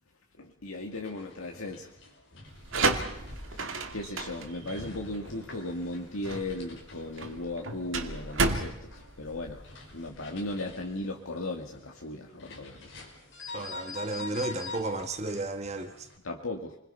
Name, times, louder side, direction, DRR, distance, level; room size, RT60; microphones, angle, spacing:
voice 1, 0.4-1.9 3.9-9.6 9.9-12.9 16.2-16.8, left 2 dB, 85° left, 1 dB, 1.9 m, -36 dB
sound 1, 0.8-16.2, left 3 dB, 60° left, 5.1 m, -47 dB
sound 2, 2.5-10.1, right 3 dB, 70° right, 2.2 m, -32 dB
sound 3, 2.6-11.2 11.4-11.6 12.0-12.9 13.2-13.6 13.8-13.9 14.1-14.5 15.1-15.6, equal, ahead, 7.5 m, -54 dB
voice 2, 13.5-16.1, right 2 dB, 30° right, 7 dB, 1.5 m, -33 dB
29.0 x 21.5 x 5.6 m, 0.79 s
head